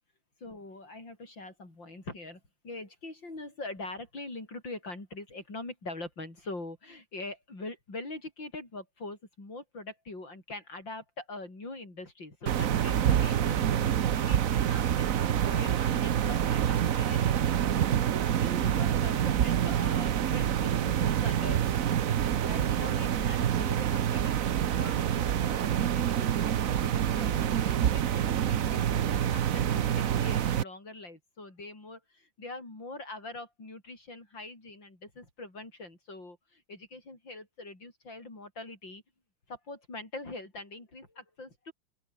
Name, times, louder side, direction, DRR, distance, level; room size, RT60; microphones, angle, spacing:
voice 1, 0.4-17.9 18.4-21.6 22.3-39.0 39.5-41.7, left 2 dB, 55° left, 8.4 m, -43 dB
sound 1, 12.5-30.6, right 10 dB, 55° right, 0.9 m, -27 dB
open air
omnidirectional pair, 2.4 m